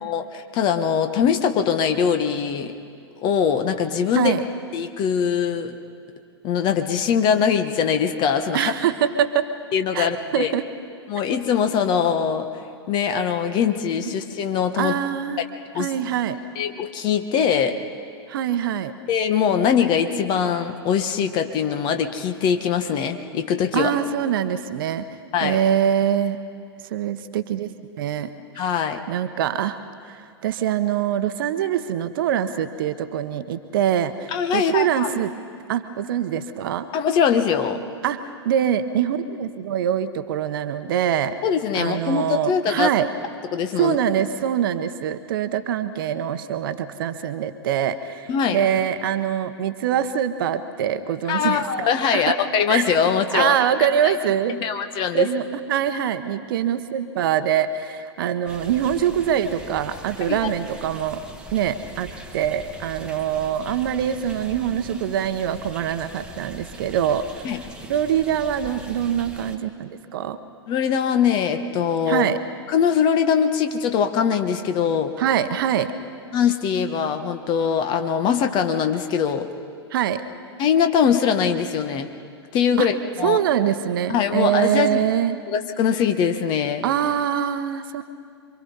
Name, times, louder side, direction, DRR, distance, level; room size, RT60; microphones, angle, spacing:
voice 1, 0.0-2.7 3.2-4.3 4.7-5.8 6.4-8.7 9.7-10.5 11.1-12.5 12.9-14.9 15.7-15.9 16.5-17.8 19.1-23.9 25.3-25.6 28.6-29.0 34.3-35.1 36.9-37.8 41.4-42.9 43.5-44.0 48.3-48.6 51.3-53.6 54.0-54.1 54.5-55.3 60.3-60.4 67.4-67.6 70.7-72.3 72.7-75.1 76.3-79.5 80.6-82.1 82.5-83.4 84.1-85.0 85.5-86.9, left 7 dB, 30° left, 7 dB, 1.4 m, -22 dB
voice 2, 8.5-9.5 9.9-10.1 10.3-10.6 14.8-15.5 15.8-16.4 18.3-18.9 23.7-25.0 25.4-26.4 26.9-27.7 28.0-28.3 29.1-29.8 30.1-35.3 35.7-36.9 38.0-41.4 41.7-43.1 43.8-52.4 52.7-54.5 55.1-61.3 61.5-67.5 67.9-70.4 72.1-72.4 75.2-75.9 79.9-80.2 82.8-82.9 83.2-85.4 86.8-88.0, right 9 dB, 50° right, 10 dB, 1.1 m, -24 dB
sound 1, 58.5-69.6, right 1 dB, 5° right, 1.5 m, -41 dB
27.0 x 24.0 x 5.5 m, 2.3 s
figure-of-eight pair, 105°, 14 cm